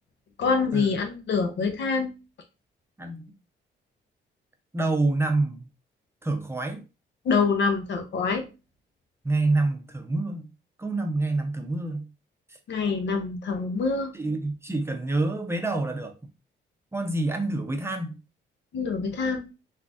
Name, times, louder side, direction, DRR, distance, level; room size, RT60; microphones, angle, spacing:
voice 1, 0.4-2.1 7.2-8.4 12.7-14.1 18.7-19.5, left 5 dB, 70° left, 0.8 m, -25 dB
voice 2, 3.0-3.3 4.7-5.6 6.2-6.8 9.2-10.4 10.8-12.0 14.1-16.1 16.9-18.2, right 2 dB, 15° right, 0.6 m, -27 dB
3.8 x 2.5 x 2.4 m
cardioid pair, 100°, 19 cm